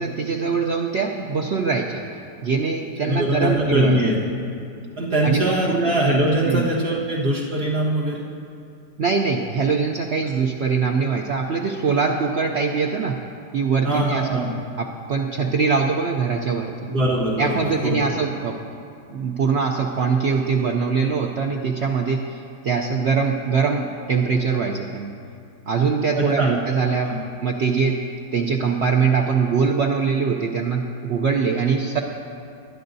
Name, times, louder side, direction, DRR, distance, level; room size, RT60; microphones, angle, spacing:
voice 1, 0.0-2.0 2.4-4.0 5.2-5.9 6.5-6.7 9.0-13.2 13.5-14.4 14.8-16.7 17.4-18.5 19.1-25.1 25.7-27.1 27.4-28.0 28.3-32.0, right 5 dB, 85° right, 1 dB, 0.5 m, -22 dB
voice 2, 3.0-4.2 5.0-8.2 13.8-14.5 16.9-18.2 26.1-26.5 27.1-27.2, right 1 dB, 65° right, -5 dB, 2.1 m, -22 dB
20.0 x 10.0 x 2.7 m, 2.5 s
omnidirectional pair, 1.9 m